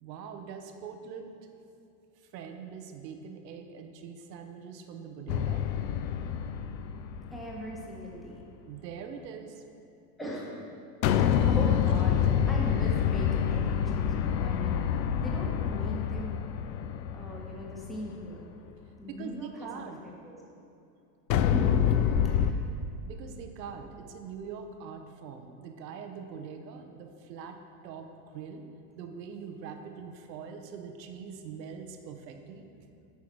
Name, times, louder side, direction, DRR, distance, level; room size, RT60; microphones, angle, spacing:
voice 1, 0.0-1.4 2.2-5.6 8.7-9.6 19.1-20.0 21.7-21.8 23.0-27.6 27.8-28.7 28.9-32.7, right 6 dB, 85° right, 5 dB, 1.0 m, -43 dB
sound 1, 5.3-7.8 11.0-18.2 21.3-22.5, left 9 dB, 85° left, 0.6 m, -27 dB
voice 2, 7.3-8.4 10.2-10.7 11.2-16.3 17.1-18.4 19.0-19.7 20.2-20.4 21.4-21.7 22.2-22.7, equal, ahead, -4 dB, 1.3 m, -40 dB
9.2 x 4.8 x 6.1 m, 2.7 s
supercardioid pair, 125°, 49 cm